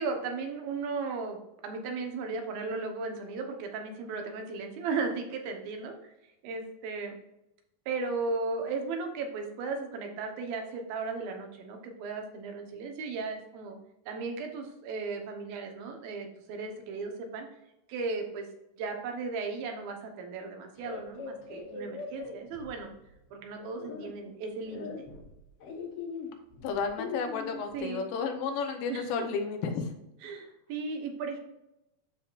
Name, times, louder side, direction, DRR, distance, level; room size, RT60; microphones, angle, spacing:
voice 1, 0.0-6.1 6.4-7.2 7.9-13.8 14.1-17.5 17.9-18.5 18.8-22.9 23.3-25.1 27.7-28.0 28.9-29.1 30.2-31.4, right 4 dB, 90° right, 3 dB, 3.0 m, -36 dB
sound 1, 20.8-23.1 23.6-24.1 24.7-27.8, left 5 dB, 60° left, 1.6 m, -41 dB
voice 2, 26.6-29.9, left 5 dB, 80° left, 5 dB, 2.8 m, -32 dB
12.0 x 4.8 x 2.5 m, 0.88 s
omnidirectional pair, 4.1 m